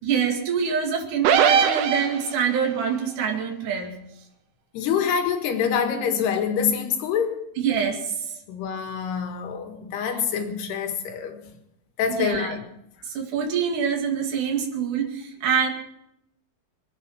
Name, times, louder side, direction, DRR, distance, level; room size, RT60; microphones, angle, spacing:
voice 1, 0.0-3.9 7.6-8.3 10.1-10.2 12.2-12.6 13.1-15.7, right 7 dB, 55° right, 3.7 m, -25 dB
sound 1, 1.2-2.6, right 8 dB, 85° right, 3.1 m, -20 dB
voice 2, 4.7-7.5 8.5-11.4 12.0-12.6, left 7 dB, 90° left, 3.7 m, -26 dB
23.5 x 9.6 x 5.8 m
omnidirectional pair, 4.5 m